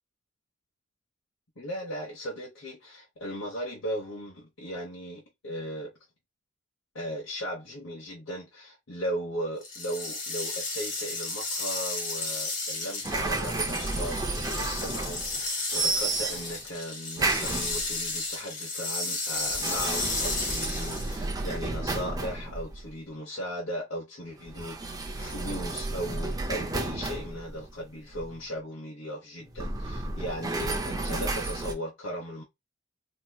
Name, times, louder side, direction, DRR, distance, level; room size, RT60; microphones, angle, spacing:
voice 1, 1.6-5.9 6.9-32.4, equal, 65° left, 1.0 m, -37 dB
sound 1, 9.6-21.2, left 3 dB, 40° left, 1.5 m, -33 dB
sound 2, 13.0-15.5 15.7-16.7 17.2-18.1 19.4-23.0 24.5-28.4 29.5-31.7, right 2 dB, 20° right, 0.5 m, -32 dB
3.6 x 2.8 x 2.3 m
head